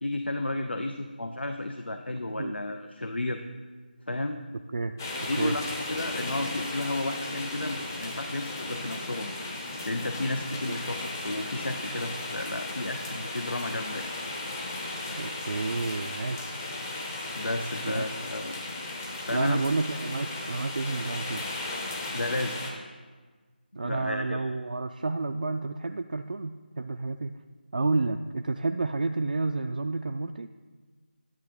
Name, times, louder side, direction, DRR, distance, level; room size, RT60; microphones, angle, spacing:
voice 1, 0.0-3.4 4.1-4.4 5.3-9.3 9.9-14.1 15.0-15.2 17.4-18.6 19.2-19.6 22.1-22.6 23.8-24.4, left 2 dB, 85° left, 7 dB, 0.6 m, -32 dB
sound 1, 5.0-22.7, left 2 dB, 20° left, 0.8 m, -36 dB
voice 2, 15.2-16.5 17.8-18.1 19.3-21.4 23.8-27.3 27.7-30.5, right 3 dB, 55° right, 6 dB, 0.3 m, -30 dB
10.5 x 7.5 x 3.6 m, 1.4 s
figure-of-eight pair, 165°, 6 cm